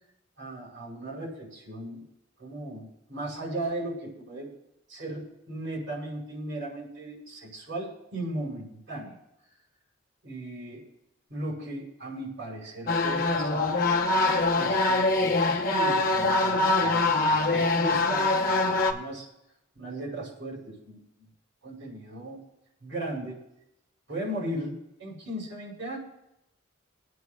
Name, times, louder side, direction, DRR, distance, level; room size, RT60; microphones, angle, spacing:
voice 1, 0.4-2.0 2.4-4.5 4.9-9.1 10.2-10.8 11.3-13.7 14.6-19.3 19.7-21.0 21.6-22.4 22.8-23.4 24.1-26.0, right 1 dB, 85° right, -4 dB, 5.1 m, -37 dB
sound 1, 12.9-18.9, left 2 dB, 45° left, 0.8 m, -24 dB
21.5 x 9.3 x 2.3 m, 0.85 s
head